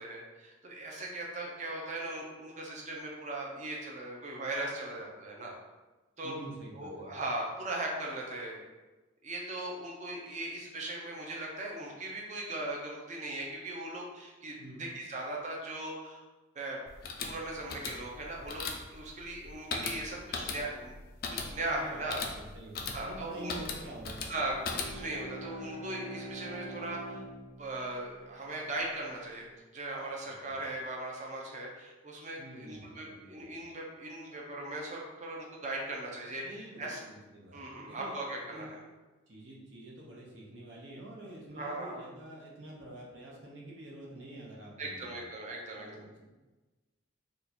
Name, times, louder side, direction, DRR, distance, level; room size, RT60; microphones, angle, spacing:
voice 1, 0.0-5.6 6.2-6.3 6.8-8.6 9.2-14.5 14.8-16.2 16.6-16.8 17.2-18.6 18.9-21.0 21.5-22.3 22.9-23.5 24.3-24.5 24.9-27.2 27.6-29.5 29.7-37.0 37.5-38.8 41.6-42.0 44.8-46.0, right 2 dB, 35° right, -2 dB, 0.6 m, -38 dB
voice 2, 6.2-7.1 14.6-14.9 21.7-24.3 30.2-30.5 32.4-33.4 36.3-38.7 39.3-45.2 45.7-46.3, right 1 dB, 70° right, -3 dB, 0.9 m, -47 dB
sound 1, 16.9-25.2, left 4 dB, 45° left, 0.4 m, -39 dB
Bowed string instrument, 24.2-28.8, right 1 dB, 15° right, 0.9 m, -45 dB
2.8 x 2.4 x 4.2 m, 1.2 s
head